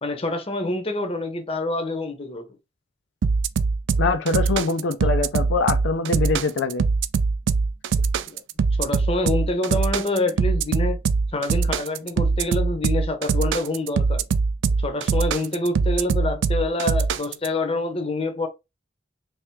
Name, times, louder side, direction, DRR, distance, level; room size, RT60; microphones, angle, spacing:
voice 1, 0.0-2.5 8.3-8.4 8.8-11.0 11.3-14.2 14.8-18.5, left 2 dB, 30° left, 0.8 m, -26 dB
sound 1, 3.2-17.5, right 4 dB, 80° right, 0.3 m, -22 dB
voice 2, 4.0-6.9, left 4 dB, 80° left, 0.4 m, -23 dB
3.4 x 3.2 x 3.1 m
head